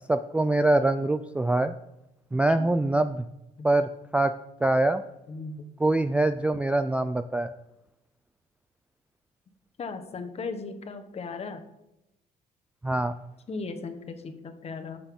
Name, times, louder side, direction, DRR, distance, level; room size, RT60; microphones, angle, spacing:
voice 1, 0.1-1.7 2.3-3.2 3.6-5.0 5.8-7.5 12.8-13.1, right 2 dB, 5° right, 9 dB, 0.3 m, -24 dB
voice 2, 5.3-5.9 9.8-11.6 13.5-14.2 14.4-15.0, left 4 dB, 35° left, 7 dB, 1.2 m, -37 dB
13.0 x 6.8 x 3.7 m, 0.88 s
cardioid pair, 110°, 17 cm